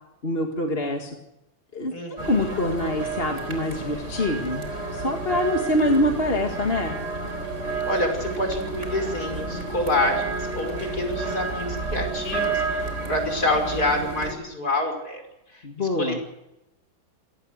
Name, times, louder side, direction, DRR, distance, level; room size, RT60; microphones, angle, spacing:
voice 1, 0.2-1.1 1.7-1.9 2.2-7.0 15.6-16.2, left 1 dB, 30° left, 2 dB, 2.2 m, -25 dB
voice 2, 1.9-2.6 7.9-15.2 15.5-16.2, left 2 dB, 50° left, 4 dB, 6.0 m, -27 dB
sound 1, 2.2-14.3, right 3 dB, 35° right, 4.2 m, -30 dB
27.0 x 18.0 x 6.6 m, 0.94 s
omnidirectional pair, 2.2 m